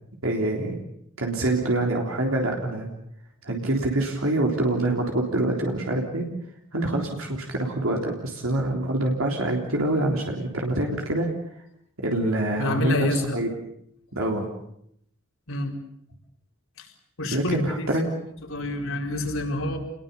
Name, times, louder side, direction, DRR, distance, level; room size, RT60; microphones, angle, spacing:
voice 1, 0.2-0.8 1.2-2.9 3.4-6.3 6.7-11.3 12.0-13.5 14.1-14.5 17.3-18.1, right 1 dB, 80° right, 1 dB, 3.6 m, -25 dB
voice 2, 12.6-13.3 15.5-15.8 16.8-16.9 17.2-18.0 18.5-19.8, left 1 dB, 75° left, 2 dB, 4.5 m, -28 dB
28.5 x 21.0 x 7.0 m, 0.73 s
head